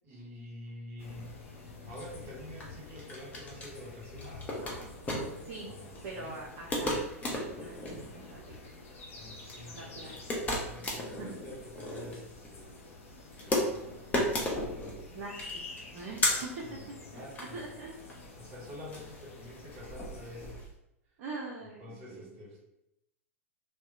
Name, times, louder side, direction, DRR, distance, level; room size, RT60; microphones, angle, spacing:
voice 1, 0.0-4.6 5.6-6.4 9.2-10.2 10.5-14.8 16.2-17.7 18.4-20.7 21.0-21.2 21.8-22.6, left 1 dB, 35° right, -3 dB, 1.3 m, -48 dB
sound 1, 1.0-20.5, left 3 dB, 70° left, 0.6 m, -49 dB
sound 2, 1.9-20.7, left 1 dB, 20° left, 0.6 m, -36 dB
voice 2, 5.4-5.7 6.0-7.0 7.3-8.7 9.7-10.2 11.1-11.3 15.1-16.5 17.1-17.2 17.5-18.0 21.2-22.3, right 3 dB, 55° right, -3 dB, 0.5 m, -44 dB
2.7 x 2.1 x 2.4 m, 0.86 s
figure-of-eight pair, 95°, 8 cm